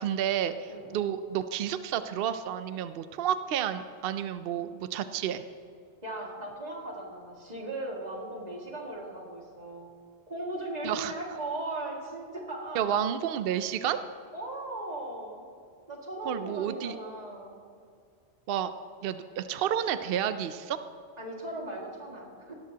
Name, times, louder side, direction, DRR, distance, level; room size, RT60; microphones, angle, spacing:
voice 1, 0.0-5.4 10.8-11.1 12.7-14.0 16.3-17.0 18.5-18.7 19.0-20.8, right 9 dB, 65° right, 11 dB, 0.7 m, -30 dB
voice 2, 0.7-1.0 6.0-9.9 10.3-13.0 14.3-15.4 15.9-17.6 21.2-22.5, right 2 dB, 40° right, -2 dB, 2.2 m, -38 dB
17.5 x 13.5 x 2.8 m, 2.3 s
omnidirectional pair, 1.1 m